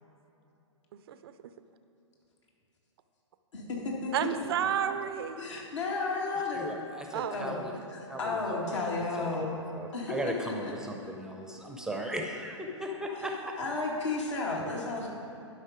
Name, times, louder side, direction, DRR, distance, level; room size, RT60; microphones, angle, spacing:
voice 1, 1.1-1.5 4.1-5.7 7.1-7.4, right 9 dB, 50° right, 11 dB, 0.5 m, -32 dB
voice 2, 3.5-4.3 5.4-6.7 7.3-7.6 7.9-9.6 9.9-10.7 13.2-13.3 13.6-15.1, left 3 dB, 70° left, -2 dB, 2.1 m, -33 dB
voice 3, 6.5-7.7 8.1-9.3 9.7-13.5, equal, 5° right, 2 dB, 0.6 m, -37 dB
11.5 x 5.4 x 5.0 m, 2.8 s
figure-of-eight pair, 120°, 16 cm